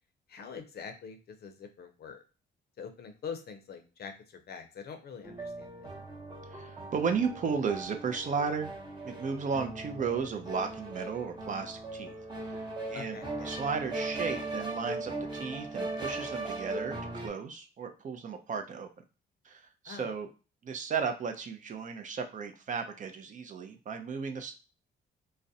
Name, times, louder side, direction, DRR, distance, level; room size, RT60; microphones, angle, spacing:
voice 1, 0.3-2.2 2.8-5.9 12.9-13.6 19.9-20.1, left 6 dB, 55° left, 7 dB, 0.5 m, -44 dB
sound 1, 5.2-17.3, right 2 dB, 20° right, 0.8 m, -39 dB
voice 2, 6.4-8.7 9.0-12.1 12.4-18.9 19.4-20.3 20.6-24.5, right 5 dB, 40° right, 6 dB, 0.4 m, -34 dB
2.3 x 2.0 x 2.6 m, 0.33 s
cardioid pair, 90°, 20 cm